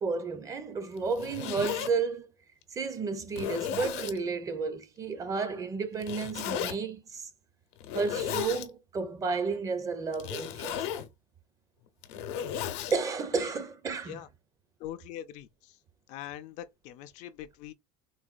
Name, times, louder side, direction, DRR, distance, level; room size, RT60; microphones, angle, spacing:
voice 1, 0.0-2.3 2.7-7.3 7.9-10.9 12.9-14.2, right 4 dB, 25° right, 0.5 m, -32 dB
Zipper (clothing), 1.0-1.9 2.6-2.7 3.3-4.2 6.0-6.8 7.8-8.7 10.1-11.1 11.9-13.0, left 9 dB, 85° left, 0.7 m, -34 dB
voice 2, 14.8-15.8 16.1-17.7, left 12 dB, 55° left, 0.4 m, -42 dB
3.9 x 2.2 x 2.4 m
cardioid pair, 150°, 14 cm